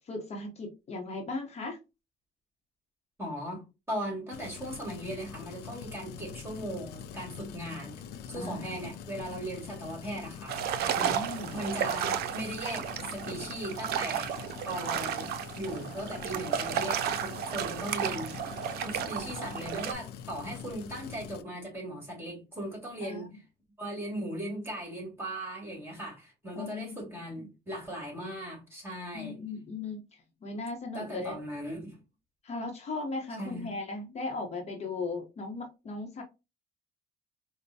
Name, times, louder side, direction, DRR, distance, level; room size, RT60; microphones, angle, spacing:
voice 1, 0.1-1.8 8.4-8.6 10.9-11.9 23.0-23.3 26.5-27.0 27.4-27.5 29.1-30.0 30.4-31.4 32.4-36.2, left 3 dB, 40° left, 0.8 m, -37 dB
voice 2, 3.2-8.0 8.3-10.6 10.9-11.2 11.5-15.3 15.6-18.3 18.8-23.4 23.8-29.4 30.9-32.0 33.4-33.8, right 1 dB, 15° right, 2.0 m, -38 dB
sound 1, 4.3-21.4, left 8 dB, 75° left, 0.4 m, -44 dB
sound 2, 10.5-19.9, right 9 dB, 70° right, 0.5 m, -33 dB
4.3 x 2.1 x 2.7 m
cardioid pair, 110°, 17 cm